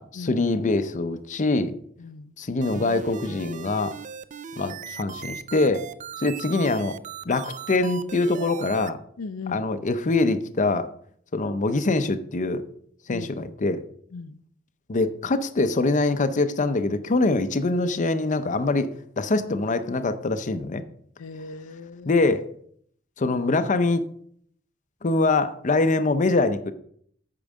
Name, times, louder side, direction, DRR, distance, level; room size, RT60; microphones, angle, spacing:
voice 1, 0.0-1.7 2.4-3.9 4.6-5.8 6.2-6.9 7.3-9.0 9.5-10.9 11.3-12.6 13.1-13.8 14.9-18.9 19.2-20.8 22.1-22.5 23.2-24.0 25.0-26.7, left 3 dB, 40° left, 0.6 m, -24 dB
voice 2, 2.0-2.3 9.2-9.6 13.1-13.3 14.1-14.4 21.2-22.2, left 4 dB, 90° left, 0.5 m, -38 dB
sound 1, 2.6-8.9, right 7 dB, 35° right, 0.4 m, -38 dB
8.7 x 4.6 x 6.3 m
head